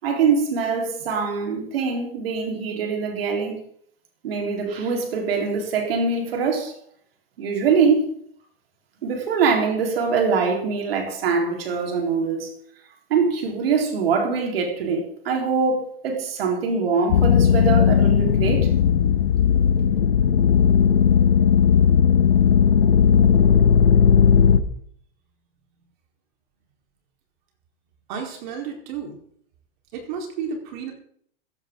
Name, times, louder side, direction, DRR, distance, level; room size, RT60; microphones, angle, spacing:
voice 1, 0.0-3.6 4.2-6.7 7.4-8.1 9.0-12.5 13.1-18.7, right 5 dB, 75° right, 4.3 m, -23 dB
sound 1, 17.1-24.6, left 7 dB, 80° left, 1.4 m, -16 dB
voice 2, 28.1-29.2 29.9-30.9, right 6 dB, 50° right, 4.3 m, -32 dB
16.0 x 12.5 x 3.9 m
supercardioid pair, 150°, 29 cm